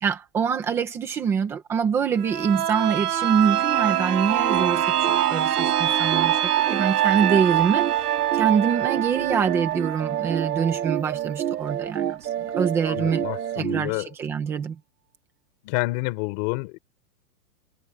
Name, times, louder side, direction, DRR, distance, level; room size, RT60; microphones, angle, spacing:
voice 1, 0.0-4.9 5.3-6.4 6.7-7.9 8.3-12.3 12.5-13.2 13.6-14.7, right 6 dB, 5° right, 0.8 m, -24 dB
sound 1, 2.2-11.8 12.1-12.2, right 11 dB, 70° right, 1.9 m, -25 dB
sound 2, 4.3-4.7 5.0-13.8, right 11 dB, 90° right, 2.0 m, -28 dB
voice 2, 12.8-14.1 15.6-16.8, left 23 dB, 25° left, 3.8 m, -29 dB
hypercardioid pair, 180°, 47 cm